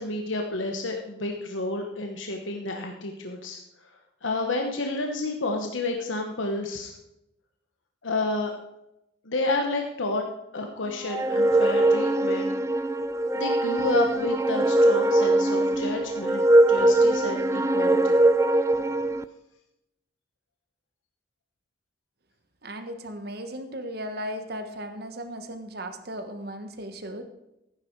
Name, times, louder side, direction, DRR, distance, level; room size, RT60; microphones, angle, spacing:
voice 1, 0.0-3.6 4.2-6.9 8.0-8.5 9.2-10.2 10.5-12.5 13.3-18.2, left 2 dB, 85° left, 3 dB, 1.1 m, -30 dB
sound 1, 11.1-19.2, right 1 dB, 15° right, 0.3 m, -21 dB
voice 2, 22.6-27.2, equal, 55° right, 7 dB, 1.3 m, -36 dB
15.0 x 9.7 x 4.7 m, 0.88 s
head